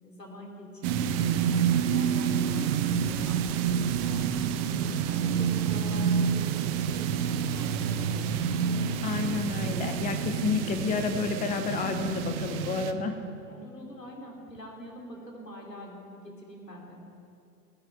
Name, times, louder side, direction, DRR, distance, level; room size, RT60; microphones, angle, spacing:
voice 1, 0.0-8.3 13.5-17.0, equal, 85° left, -1 dB, 3.0 m, -45 dB
sound 1, 0.8-12.9, right 7 dB, 40° right, 0.9 m, -28 dB
voice 2, 9.0-13.2, left 5 dB, 15° left, 8 dB, 0.8 m, -30 dB
21.5 x 8.6 x 4.9 m, 2.6 s
figure-of-eight pair, 95°, 48 cm